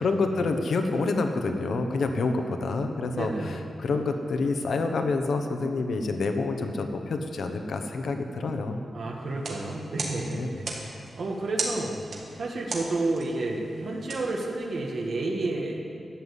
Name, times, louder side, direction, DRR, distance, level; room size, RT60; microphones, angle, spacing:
voice 1, 0.0-8.8 10.3-10.5, left 3 dB, 70° left, 5 dB, 1.1 m, -28 dB
voice 2, 3.2-3.6 8.9-10.7 11.2-12.0 12.4-15.8, right 2 dB, 60° right, -1 dB, 1.6 m, -30 dB
sound 1, 9.3-15.1, right 3 dB, 75° right, 2.2 m, -38 dB
12.5 x 9.5 x 8.3 m, 2.4 s
wide cardioid pair, 180°, 0 cm